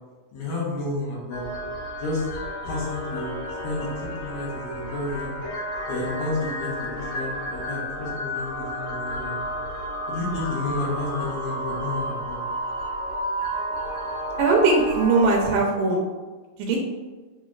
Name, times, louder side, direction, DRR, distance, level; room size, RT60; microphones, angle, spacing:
voice 1, 0.3-1.5 2.0-2.3 2.6-3.3 3.6-5.3 5.9-6.7 7.0-9.4 10.1-12.4, left 2 dB, 70° left, -4 dB, 2.4 m, -31 dB
sound 1, 1.3-15.6, equal, 85° left, 3.1 m, -32 dB
voice 2, 14.4-16.1 16.6-16.8, right 3 dB, 80° right, -2 dB, 2.1 m, -20 dB
6.3 x 2.9 x 2.4 m, 1.3 s
omnidirectional pair, 3.8 m